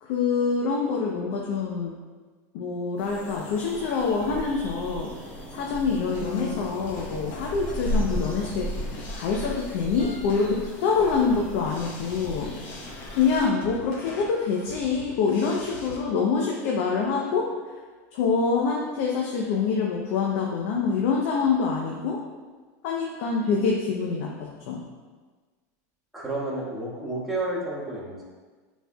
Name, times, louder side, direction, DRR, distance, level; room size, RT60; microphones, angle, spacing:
voice 1, 0.0-1.9 2.5-5.1 5.5-8.7 9.1-12.5 13.1-17.5 18.1-22.2 22.8-24.8, left 5 dB, 65° left, -1 dB, 0.8 m, -25 dB
sound 1, 3.0-13.5, equal, 15° left, 1.4 m, -35 dB
sound 2, 6.1-16.0, left 4 dB, 50° left, 1.2 m, -41 dB
voice 2, 26.1-28.2, right 2 dB, ahead, -8 dB, 1.8 m, -31 dB
9.1 x 4.5 x 2.3 m, 1.4 s
supercardioid pair, 140°, 9 cm